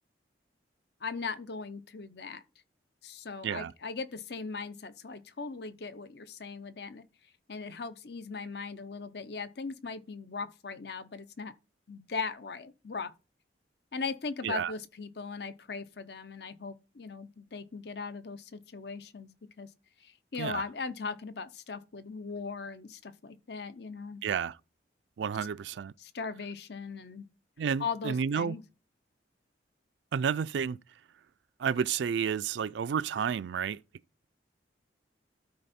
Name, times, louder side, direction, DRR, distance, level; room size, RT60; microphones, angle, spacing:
voice 1, 1.0-2.4 3.0-7.0 7.5-11.5 11.9-13.1 13.9-19.3 19.6-19.7 20.0-24.2 26.0-27.2 27.8-28.6, left 4 dB, 60° left, 0.7 m, -39 dB
voice 2, 24.2-24.6 25.2-25.9 27.6-28.6 30.1-30.8 31.6-33.8, right 7 dB, 75° right, 0.3 m, -31 dB
12.5 x 4.4 x 4.2 m
head